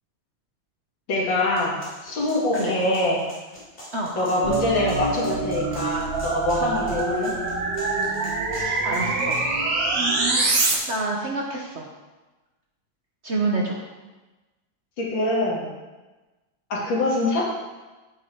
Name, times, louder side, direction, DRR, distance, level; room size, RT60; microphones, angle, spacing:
voice 1, 1.1-1.7 2.0-3.2 4.2-7.3 15.0-15.7 16.7-17.4, left 2 dB, 75° left, -4 dB, 2.8 m, -24 dB
sound 1, 1.6-9.5, equal, 30° left, 3.3 m, -44 dB
sound 2, 4.4-10.7, right 3 dB, 70° right, 2.0 m, -25 dB
voice 2, 8.5-9.5 9.9-11.9 13.2-13.8, right 2 dB, 45° right, -1 dB, 1.0 m, -28 dB
8.3 x 8.1 x 4.5 m, 1.2 s
omnidirectional pair, 2.1 m